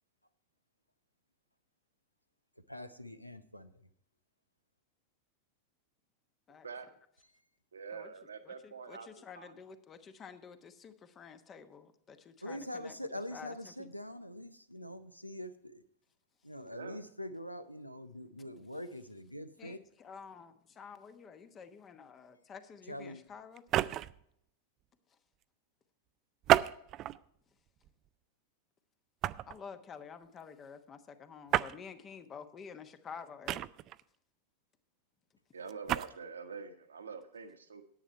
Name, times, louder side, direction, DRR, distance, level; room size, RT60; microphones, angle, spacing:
voice 1, 2.7-3.7 12.4-15.8 16.4-19.8 22.9-23.2, left 1 dB, 90° left, 12 dB, 0.8 m, -44 dB
voice 2, 7.7-9.6 16.7-17.0 35.5-37.8, right 5 dB, 70° right, 9 dB, 1.2 m, -46 dB
voice 3, 8.5-13.0 13.3-13.9 18.4-18.5 19.6-23.6 29.5-33.7, left 6 dB, 25° left, 10 dB, 1.0 m, -50 dB
sound 1, 23.6-24.2 26.4-27.2 27.8-28.1 29.2-29.6 31.5-31.8 33.5-34.0 35.7-36.1, right 13 dB, 35° right, 0.4 m, -30 dB
10.0 x 9.2 x 4.4 m, 0.70 s
figure-of-eight pair, 90°, 0 cm